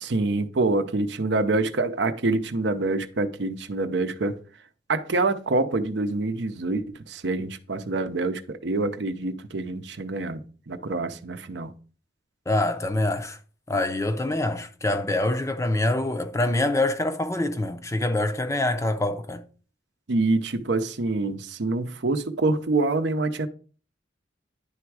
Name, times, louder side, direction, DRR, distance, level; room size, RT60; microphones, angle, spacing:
voice 1, 0.0-4.4 4.9-11.7 20.1-23.5, right 2 dB, 65° right, 0.7 m, -26 dB
voice 2, 12.5-13.4 13.7-19.5, left 2 dB, 15° left, 0.5 m, -25 dB
10.0 x 3.5 x 4.7 m
head